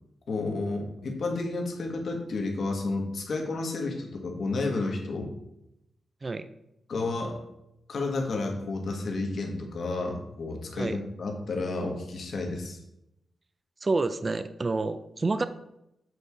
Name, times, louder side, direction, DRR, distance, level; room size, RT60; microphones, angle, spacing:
voice 1, 0.3-5.3 6.9-7.4 7.9-12.8, left 3 dB, 50° left, 2 dB, 1.4 m, -31 dB
voice 2, 13.8-15.5, right 3 dB, 25° right, 12 dB, 0.3 m, -28 dB
7.9 x 4.3 x 4.8 m, 0.85 s
wide cardioid pair, 180°, 0 cm